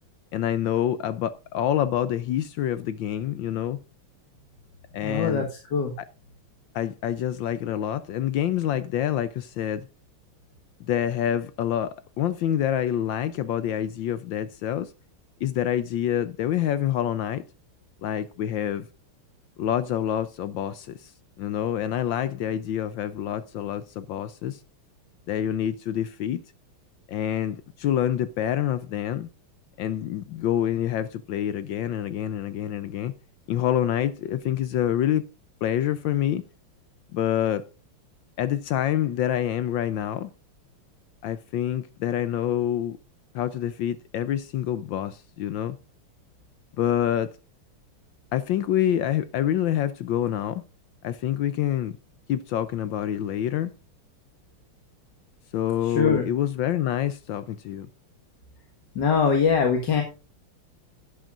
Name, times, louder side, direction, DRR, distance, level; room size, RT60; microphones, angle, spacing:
voice 1, 0.3-3.8 4.9-5.5 6.7-9.9 10.8-14.9 15.4-17.4 18.0-18.9 19.6-21.1 21.4-24.6 25.3-26.4 27.1-29.3 29.8-33.1 33.5-35.2 35.6-36.4 37.1-37.6 38.4-40.3 41.2-43.0 43.3-45.8 46.8-47.3 48.3-50.6 51.0-51.9 52.3-53.7 55.5-57.9, left 11 dB, 70° left, 1.2 m, -27 dB
voice 2, 5.0-5.4 5.7-5.9 55.8-56.2 59.0-60.0, left 6 dB, 55° left, 2.1 m, -22 dB
10.5 x 10.5 x 2.5 m
omnidirectional pair, 2.4 m